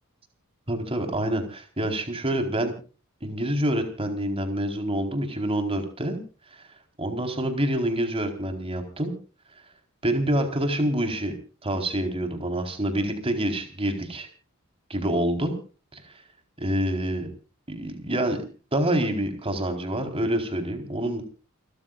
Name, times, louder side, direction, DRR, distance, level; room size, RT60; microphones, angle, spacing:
voice 1, 0.7-2.7 3.2-6.2 6.6-6.7 7.0-9.1 10.0-11.3 11.6-14.3 14.9-15.5 16.6-17.3 17.7-18.4 18.7-21.2, right 1 dB, 25° right, 5 dB, 4.4 m, -27 dB
29.5 x 14.5 x 2.5 m, 0.36 s
head